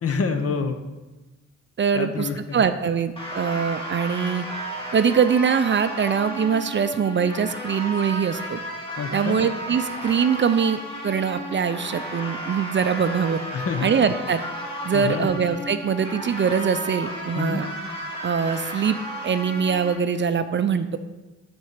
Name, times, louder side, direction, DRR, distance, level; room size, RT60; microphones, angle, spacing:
voice 1, 0.0-0.8 1.9-2.6 9.0-9.4 13.5-13.9 14.9-15.3 17.3-17.6, left 5 dB, 50° left, 7 dB, 0.9 m, -27 dB
voice 2, 1.8-4.5 4.9-8.6 9.1-13.4 13.8-14.4 14.8-17.7 18.2-19.0 19.2-21.0, right 6 dB, 35° right, 10 dB, 0.5 m, -23 dB
sound 1, 3.2-19.9, equal, 15° left, 2.0 m, -33 dB
6.6 x 4.4 x 6.5 m, 1.1 s
cardioid pair, 75°, 31 cm